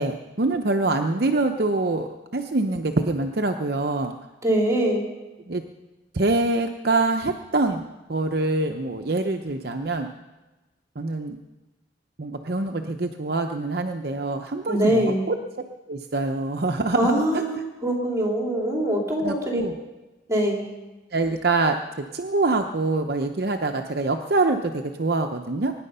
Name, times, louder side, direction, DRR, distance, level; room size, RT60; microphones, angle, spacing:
voice 1, 0.0-4.2 5.5-5.6 6.1-7.8 8.1-10.1 11.0-11.4 12.2-15.4 15.9-17.4 19.2-19.8 21.1-25.7, right 2 dB, 55° right, 5 dB, 0.8 m, -25 dB
voice 2, 4.4-5.0 14.7-15.3 16.9-19.6 20.3-20.6, right 1 dB, 15° right, -1 dB, 3.5 m, -23 dB
23.5 x 10.0 x 5.5 m, 1.1 s
head